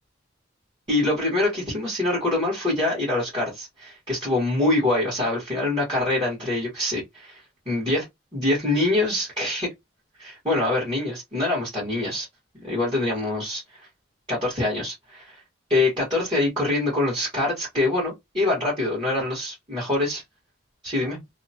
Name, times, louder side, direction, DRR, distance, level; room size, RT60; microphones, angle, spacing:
voice 1, 0.9-8.0 8.3-9.7 10.2-12.3 12.6-13.8 14.3-15.4 15.7-20.2 20.8-21.2, left 2 dB, 25° right, 1.5 m, -25 dB
2.9 x 2.3 x 2.7 m
head